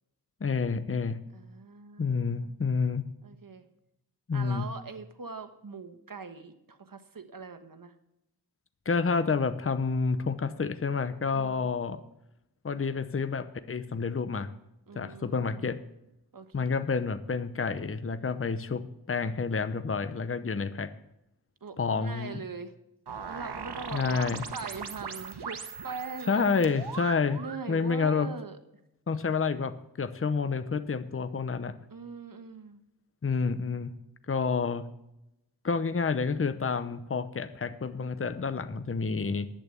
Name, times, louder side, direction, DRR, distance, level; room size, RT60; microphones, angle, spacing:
voice 1, 0.4-1.2 2.0-3.1 4.3-4.7 8.9-12.0 12.6-14.5 14.9-15.8 16.5-20.9 21.8-22.4 23.9-24.4 26.3-27.4 27.7-28.3 29.1-31.7 33.2-34.0 34.3-34.9 35.6-39.5, left 5 dB, 35° left, 12 dB, 0.7 m, -29 dB
voice 2, 1.3-2.5 3.2-3.7 4.3-7.9 11.3-11.7 14.9-15.6 16.3-16.8 21.6-22.7 23.3-26.6 27.4-28.6 31.9-32.8, right 4 dB, 60° right, 8 dB, 1.3 m, -42 dB
sound 1, 23.1-27.7, right 6 dB, 85° right, 1.1 m, -39 dB
11.0 x 8.9 x 6.8 m, 0.86 s
wide cardioid pair, 75°, 39 cm